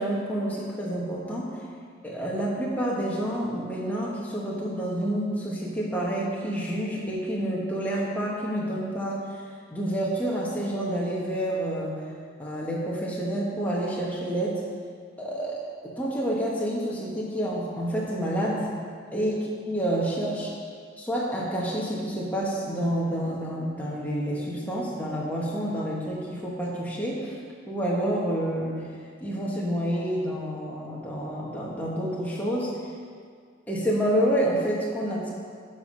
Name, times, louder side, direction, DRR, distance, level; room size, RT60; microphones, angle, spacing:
voice 1, 0.0-1.6 2.0-9.2 9.7-12.0 12.4-14.6 15.2-15.6 16.0-18.7 19.1-19.3 19.7-20.6 21.0-27.4 27.7-28.8 29.2-32.8 33.7-35.3, right 1 dB, 10° left, -5 dB, 1.5 m, -28 dB
11.0 x 5.2 x 5.2 m, 2.1 s
head